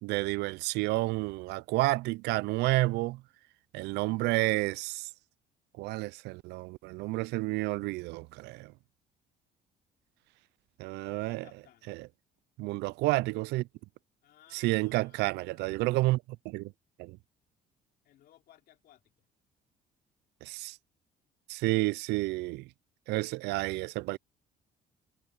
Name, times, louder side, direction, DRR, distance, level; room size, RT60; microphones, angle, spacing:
voice 1, 0.0-3.2 3.7-5.1 5.8-8.7 10.8-11.4 11.9-12.0 12.6-13.7 14.5-16.7 17.0-17.2 20.4-20.8 21.5-22.7 23.1-24.2, right 21 dB, 85° right, 0.4 m, -30 dB
voice 2, 11.1-12.0 14.2-15.9 18.0-19.3, left 12 dB, 70° left, 3.4 m, -61 dB
cardioid pair, 110°, 17 cm